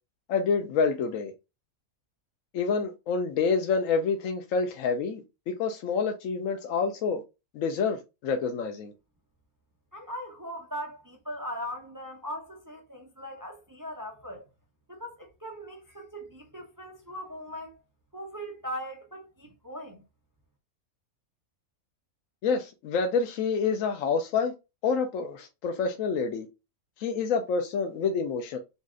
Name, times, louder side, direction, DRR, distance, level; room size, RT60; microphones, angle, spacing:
voice 1, 0.3-1.3 2.5-7.2 7.5-8.9 22.4-24.5 24.8-26.5 27.0-28.6, left 5 dB, 70° left, 0.9 m, -27 dB
voice 2, 9.9-14.5 14.9-17.8 18.1-20.0, equal, 35° right, 0.3 m, -39 dB
4.0 x 2.4 x 3.6 m
omnidirectional pair, 1.5 m